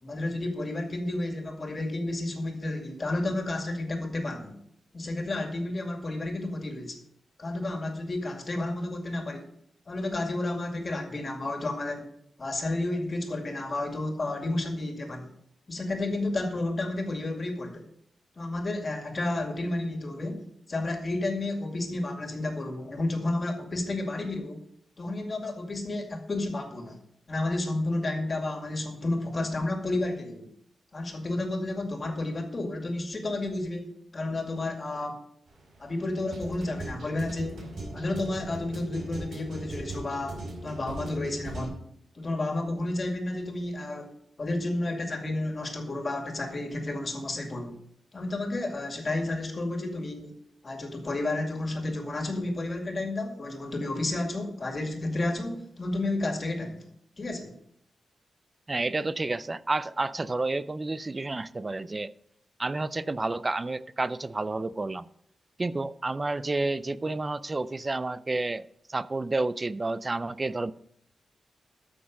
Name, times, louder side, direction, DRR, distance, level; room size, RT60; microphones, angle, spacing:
voice 1, 0.0-4.5 4.9-7.0 7.4-9.5 9.9-12.1 12.4-15.3 15.7-17.8 18.4-20.4 20.7-24.6 25.0-27.0 27.3-30.5 30.9-35.1 35.8-41.8 42.1-44.1 44.4-47.8 48.1-50.3 50.6-56.8 57.2-57.5, left 2 dB, 35° left, 2.2 m, -31 dB
sound 1, 35.5-41.6, right 2 dB, 70° right, 4.9 m, -39 dB
voice 2, 58.7-62.1 62.6-65.1 65.6-70.7, right 2 dB, 25° right, 0.4 m, -30 dB
13.5 x 6.3 x 5.2 m
wide cardioid pair, 140°, 0 cm